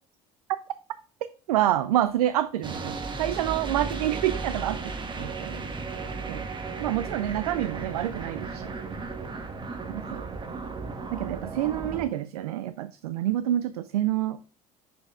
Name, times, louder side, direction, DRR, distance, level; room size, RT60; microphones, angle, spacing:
voice 1, 1.5-4.8 5.2-5.6 6.3-6.4 6.8-8.7 9.9-10.3 11.1-14.4, right 12 dB, 80° right, 13 dB, 0.4 m, -27 dB
sound 1, 2.6-12.0, right 4 dB, 25° right, 1.4 m, -35 dB
7.7 x 6.6 x 2.3 m, 0.40 s
hypercardioid pair, 60°, 19 cm